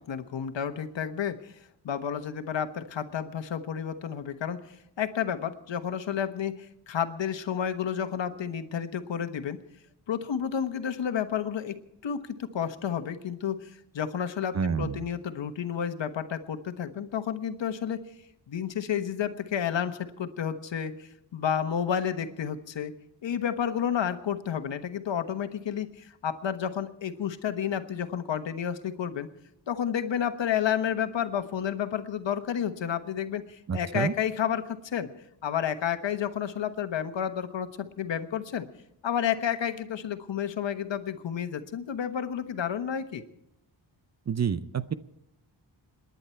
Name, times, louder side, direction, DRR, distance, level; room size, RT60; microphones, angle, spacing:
voice 1, 0.1-1.5 1.8-9.6 10.1-11.8 12.0-18.0 18.5-22.9 23.2-29.3 29.7-35.1 35.4-38.7 39.0-43.2, left 8 dB, 70° left, 9 dB, 1.3 m, -31 dB
voice 2, 14.5-15.0 33.7-34.1 44.3-44.9, right 6 dB, 35° right, 14 dB, 0.6 m, -28 dB
27.5 x 10.5 x 4.5 m, 0.84 s
wide cardioid pair, 140°, 45 cm